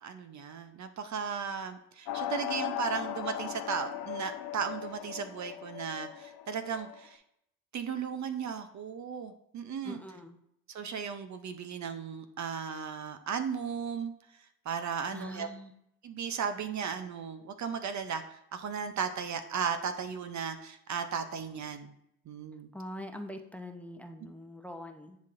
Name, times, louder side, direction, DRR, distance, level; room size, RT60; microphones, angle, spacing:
voice 1, 0.0-7.2 7.7-10.0 10.7-14.1 14.7-15.5 16.0-21.9 22.3-22.7, right 6 dB, 45° right, 9 dB, 0.6 m, -36 dB
sound 1, 2.1-7.0, left 11 dB, 65° left, 0.6 m, -38 dB
voice 2, 9.8-10.4 15.1-15.7 22.7-25.2, left 1 dB, 5° left, 6 dB, 0.7 m, -43 dB
10.0 x 4.0 x 2.5 m, 0.79 s
supercardioid pair, 65°, 39 cm